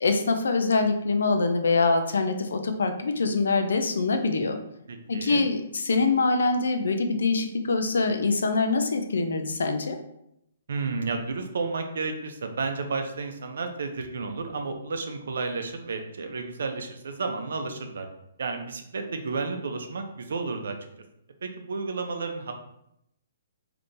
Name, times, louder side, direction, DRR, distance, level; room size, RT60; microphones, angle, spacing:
voice 1, 0.0-4.6 5.1-10.0, left 3 dB, 90° left, 6 dB, 0.5 m, -24 dB
voice 2, 4.9-5.4 10.7-18.1 18.4-20.8 21.4-22.5, right 4 dB, 75° right, 5 dB, 0.6 m, -32 dB
3.6 x 2.8 x 2.6 m, 0.79 s
hypercardioid pair, 160°, 0 cm